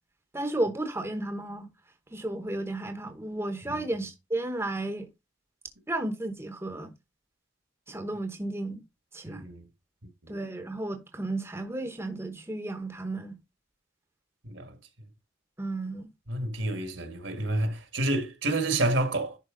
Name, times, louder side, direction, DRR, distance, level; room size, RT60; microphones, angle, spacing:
voice 1, 0.3-1.7 2.1-5.1 5.9-6.9 7.9-8.8 9.1-9.5 10.3-13.4 15.6-16.1, right 2 dB, 15° right, 0.9 m, -33 dB
voice 2, 9.3-9.6 10.2-10.3 14.4-14.7 16.3-19.4, right 2 dB, 70° right, 1.7 m, -29 dB
11.0 x 4.6 x 3.8 m
head